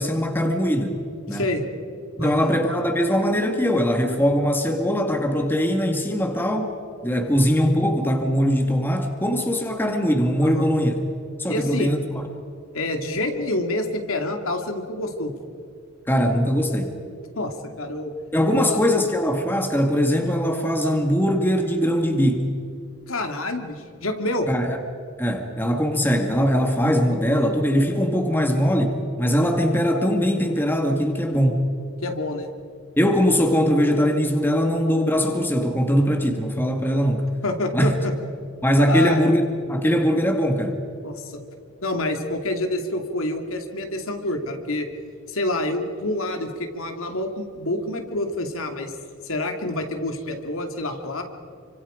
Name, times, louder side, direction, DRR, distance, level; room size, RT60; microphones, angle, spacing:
voice 1, 0.0-1.5 2.2-6.8 7.0-10.9 11.4-12.0 16.1-16.9 18.3-22.5 24.5-24.8 25.2-31.7 33.0-37.3 37.7-38.0 38.6-40.8, equal, 10° left, 3 dB, 2.0 m, -21 dB
voice 2, 1.3-1.6 2.2-2.6 10.4-10.8 11.5-11.9 12.7-15.3 17.4-18.1 18.5-18.8 23.1-24.5 32.0-32.5 37.4-38.1 38.9-39.3 41.0-41.4 41.8-44.9 45.3-48.9 49.2-51.2, left 1 dB, 70° left, 4 dB, 2.5 m, -27 dB
30.0 x 25.0 x 5.1 m, 2.4 s
head